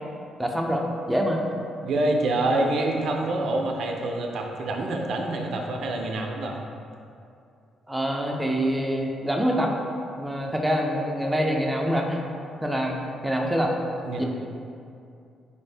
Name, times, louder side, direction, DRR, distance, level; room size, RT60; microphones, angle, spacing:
voice 1, 0.4-1.4 7.9-9.7 10.2-12.2 12.6-13.7 14.2-14.3, equal, 5° right, 0 dB, 0.4 m, -25 dB
voice 2, 1.8-6.6 14.0-14.2, right 2 dB, 70° right, 1 dB, 0.4 m, -26 dB
4.1 x 2.6 x 3.3 m, 2.5 s
cardioid pair, 90°, 0 cm